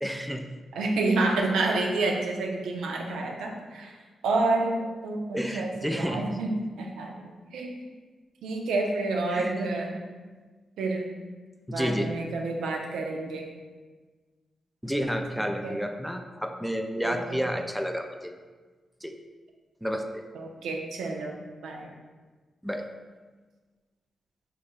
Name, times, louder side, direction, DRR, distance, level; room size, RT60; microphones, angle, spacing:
voice 1, 0.0-0.5 5.3-6.3 9.3-9.6 11.7-12.1 14.8-18.3 19.0-19.1 19.8-20.2 22.6-22.9, equal, ahead, 5 dB, 0.4 m, -30 dB
voice 2, 0.7-4.0 4.2-6.5 6.8-7.8 8.4-9.9 10.8-11.1 11.7-13.5 15.6-15.8 17.0-17.4 20.3-21.3 21.6-21.9, right 2 dB, 80° right, 1 dB, 0.4 m, -29 dB
3.1 x 2.6 x 3.6 m, 1.4 s
supercardioid pair, 40°, 0 cm